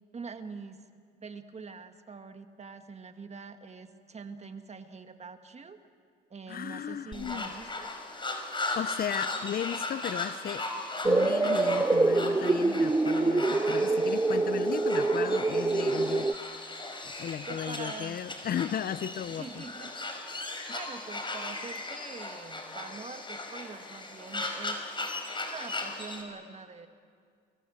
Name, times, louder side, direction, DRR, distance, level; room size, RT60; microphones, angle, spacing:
voice 1, 0.1-0.9 1.2-5.8 6.3-7.9 17.5-18.2 19.4-19.9 20.7-24.8 25.4-26.9, right 4 dB, 35° right, 8 dB, 1.8 m, -44 dB
voice 2, 6.5-7.5 8.7-10.7 11.0-16.3 17.0-19.6, left 9 dB, 45° left, 14 dB, 0.8 m, -35 dB
sound 1, 7.1-26.2, left 2 dB, 25° left, 5.4 m, -37 dB
sound 2, 11.0-16.3, right 3 dB, 15° right, 0.7 m, -25 dB
29.0 x 24.0 x 7.8 m, 2.2 s
supercardioid pair, 70°, 20 cm